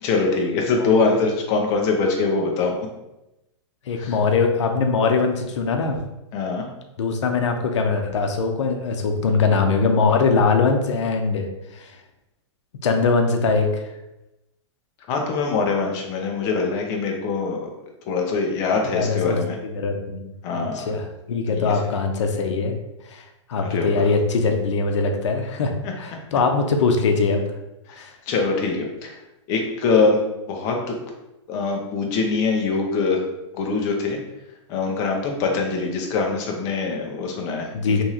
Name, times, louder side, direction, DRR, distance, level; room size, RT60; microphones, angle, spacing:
voice 1, 0.0-2.7 4.0-4.2 6.3-6.7 15.1-17.7 18.1-19.6 20.4-21.0 21.5-21.7 23.6-24.1 25.8-25.9 27.9-29.2 29.5-30.2 30.5-31.0 31.5-33.2 33.5-34.2 34.7-37.7 38.0-38.1, left 4 dB, 20° left, 1 dB, 0.5 m, -23 dB
voice 2, 0.7-1.2 3.9-6.0 7.0-11.9 12.8-13.8 18.9-19.4 19.6-20.2 20.7-22.7 23.1-23.2 23.5-27.4 27.9-28.1 37.7-38.0, left 4 dB, 75° left, 4 dB, 0.6 m, -22 dB
3.1 x 2.9 x 3.6 m, 0.95 s
supercardioid pair, 175°, 15 cm